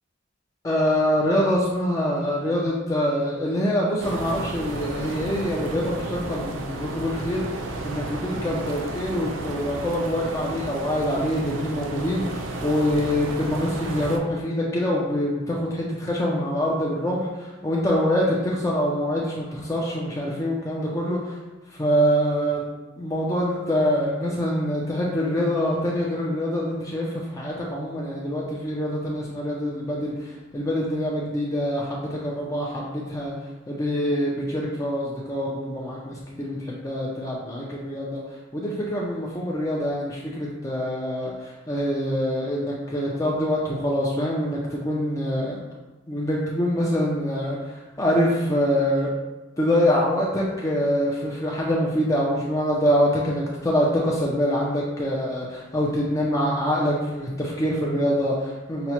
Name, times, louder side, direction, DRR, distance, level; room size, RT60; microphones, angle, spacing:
voice 1, 0.6-7.5 7.8-21.4 21.7-22.7 23.0-33.3 33.7-38.2 38.5-45.6 46.1-49.1 49.6-58.9, equal, 15° left, -4 dB, 0.4 m, -25 dB
sound 1, 4.0-14.2, right 2 dB, 75° right, 0.4 m, -33 dB
5.7 x 2.1 x 2.9 m, 1.1 s
head